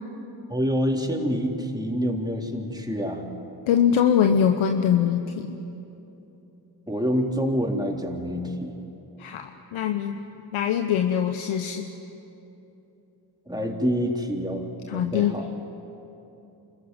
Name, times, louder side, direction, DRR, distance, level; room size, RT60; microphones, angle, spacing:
voice 1, 0.5-3.3 6.9-8.8 13.5-14.6 14.9-15.5, equal, 10° right, 0 dB, 3.8 m, -27 dB
voice 2, 3.7-5.6 9.2-10.2 10.5-11.9 14.9-15.3, left 8 dB, 85° left, 6 dB, 1.0 m, -23 dB
26.5 x 15.0 x 9.7 m, 3.0 s
supercardioid pair, 40°, 47 cm